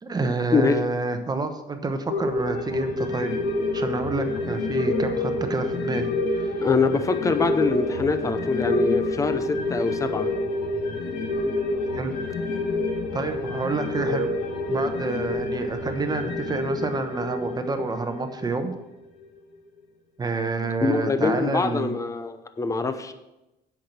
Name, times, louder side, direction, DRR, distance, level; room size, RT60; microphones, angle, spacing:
voice 1, 0.0-3.4 3.7-6.7 11.9-12.1 13.1-14.3 14.7-18.7 20.2-21.9, right 3 dB, 25° right, 7 dB, 1.0 m, -28 dB
voice 2, 0.5-0.8 6.6-10.3 20.8-23.1, left 4 dB, 20° left, 10 dB, 0.8 m, -24 dB
sound 1, 2.1-18.9 19.2-19.3, left 2 dB, 80° left, 1.6 m, -28 dB
8.3 x 6.1 x 6.1 m, 0.97 s
cardioid pair, 110°, 17 cm